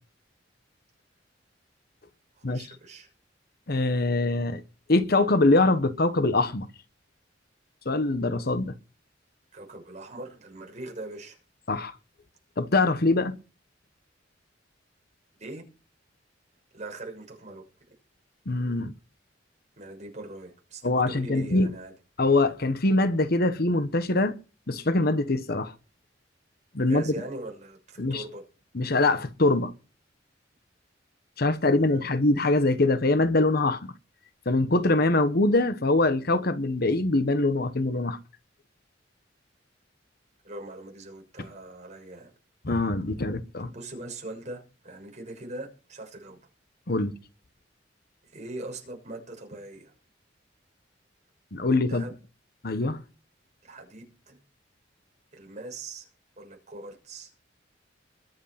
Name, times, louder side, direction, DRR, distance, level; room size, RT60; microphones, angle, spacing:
voice 1, 2.3-3.1 9.5-11.4 15.4-15.6 16.7-17.7 19.8-21.9 26.8-28.4 31.6-32.2 40.4-42.3 43.6-46.4 48.2-49.9 51.9-52.2 53.6-54.4 55.3-56.1 56.4-57.3, right 2 dB, 40° right, 6.5 m, -41 dB
voice 2, 3.7-4.6 4.9-6.7 7.8-8.7 11.7-11.9 12.6-13.3 18.5-18.9 20.8-21.7 22.2-24.4 24.7-25.7 26.7-27.1 28.0-28.2 28.7-29.7 31.4-33.9 34.5-38.2 42.6-43.7 46.9-47.1 51.5-52.0 52.6-53.0, left 2 dB, 55° left, 1.1 m, -23 dB
22.0 x 8.2 x 5.8 m
head